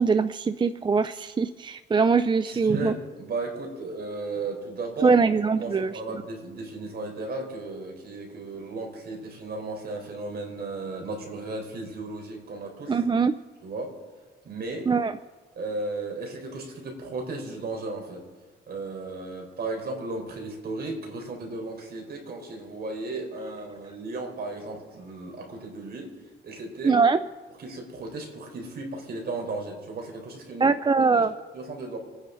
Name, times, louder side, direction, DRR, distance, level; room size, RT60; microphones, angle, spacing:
voice 1, 0.0-2.9 5.0-5.9 12.9-13.3 14.9-15.1 26.8-27.2 30.6-31.3, right 5 dB, 25° right, 12 dB, 0.4 m, -22 dB
voice 2, 2.4-5.2 5.6-13.0 13.6-14.0 14.4-14.9 15.6-18.2 18.7-26.1 26.4-27.0 27.6-30.7 31.0-32.0, right 2 dB, 50° right, 1 dB, 4.5 m, -35 dB
27.0 x 9.9 x 4.0 m, 1.3 s
cardioid pair, 90°, 20 cm